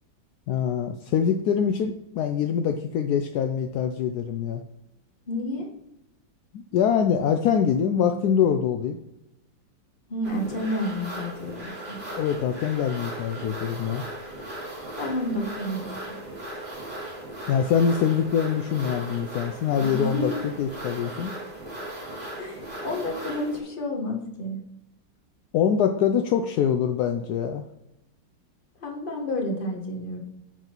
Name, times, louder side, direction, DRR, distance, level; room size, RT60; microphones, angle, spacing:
voice 1, 0.5-4.6 6.5-9.0 12.1-14.0 17.5-21.3 25.5-27.6, left 8 dB, 75° left, 6 dB, 0.9 m, -24 dB
voice 2, 5.3-5.7 10.1-12.0 15.0-16.2 19.8-20.4 22.4-24.6 28.8-30.2, left 1 dB, 30° left, 0 dB, 1.4 m, -30 dB
sound 1, 10.2-23.6, right 1 dB, 25° right, 2.1 m, -37 dB
11.0 x 4.0 x 4.4 m, 0.85 s
omnidirectional pair, 2.2 m